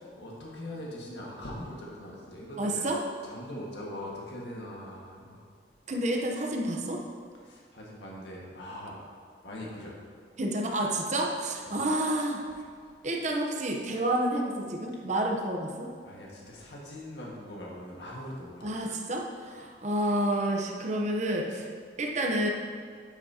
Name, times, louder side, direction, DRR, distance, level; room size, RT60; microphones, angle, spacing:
voice 1, 0.0-2.8 3.2-5.4 7.4-9.0 9.4-10.0 11.7-11.8 16.0-18.8, left 1 dB, 70° left, -3 dB, 1.8 m, -41 dB
voice 2, 2.6-3.0 5.9-7.0 10.4-12.4 13.0-15.9 18.6-21.7 22.0-22.5, right 1 dB, 40° right, 1 dB, 0.9 m, -29 dB
10.5 x 9.1 x 2.9 m, 2.2 s
head